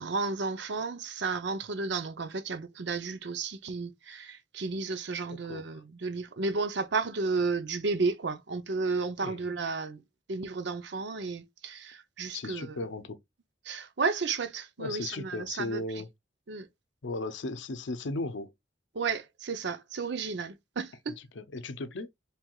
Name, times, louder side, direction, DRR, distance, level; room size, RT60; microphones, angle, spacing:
voice 1, 0.0-10.0 10.3-12.7 13.6-16.0 16.5-16.7 18.9-21.2, right 4 dB, 65° right, 0.6 m, -33 dB
voice 2, 5.3-5.8 9.2-9.4 12.3-13.2 14.8-16.1 17.0-18.5 21.3-22.1, left 2 dB, 70° left, 0.6 m, -36 dB
4.5 x 3.4 x 2.3 m
head